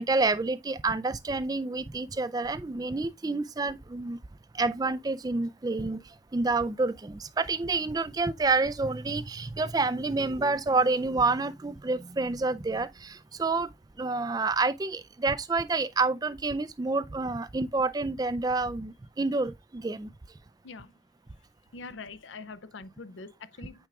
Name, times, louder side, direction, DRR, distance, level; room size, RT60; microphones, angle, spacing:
voice 1, 0.0-4.2 4.5-6.0 6.3-13.7 14.0-20.1, right 3 dB, 20° right, 0.3 m, -28 dB
voice 2, 20.6-21.0 21.7-23.9, left 4 dB, 75° left, 0.6 m, -44 dB
8.8 x 4.7 x 2.3 m
head